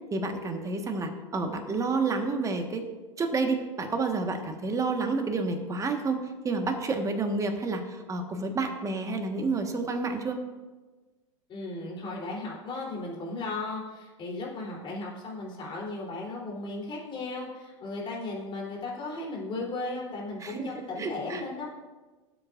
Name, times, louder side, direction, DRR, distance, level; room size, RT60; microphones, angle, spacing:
voice 1, 0.1-2.8 3.2-10.4 20.4-21.4, right 3 dB, 20° right, 4 dB, 1.4 m, -30 dB
voice 2, 11.5-21.7, left 2 dB, 30° left, -3 dB, 3.4 m, -36 dB
17.5 x 7.8 x 2.5 m, 1.3 s
hypercardioid pair, 105°, 17 cm